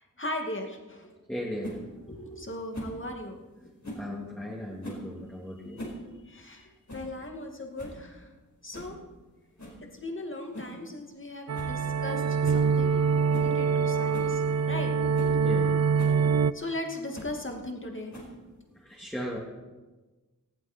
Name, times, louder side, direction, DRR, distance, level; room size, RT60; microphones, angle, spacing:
voice 1, 0.0-1.1 2.1-3.7 6.3-8.3 8.6-9.0 9.8-13.1 13.3-14.9 16.5-18.1, left 1 dB, 35° left, 2 dB, 2.4 m, -38 dB
voice 2, 1.3-1.8 3.9-5.9 9.6-9.7 15.4-15.9 18.7-19.4, equal, 5° left, -4 dB, 2.9 m, -37 dB
sound 1, 1.6-1.8 2.7-3.0 3.8-4.1 4.8-5.1 5.6-6.0 6.3-6.4 6.9-7.1 7.5-7.6 7.8-8.0 8.7-9.0 9.6-9.8 10.5-10.8 11.1-11.2 11.5-11.8 12.0-12.1 12.4-12.7 13.3-13.5 14.1-14.3 14.8-14.9 15.1-15.4 16.0-16.2 17.1-17.4 18.1-18.5, equal, 60° left, 4.9 m, -41 dB
sound 2, 11.5-16.5, right 6 dB, 50° right, 0.5 m, -25 dB
19.0 x 15.5 x 4.5 m, 1.2 s
wide cardioid pair, 80°, 33 cm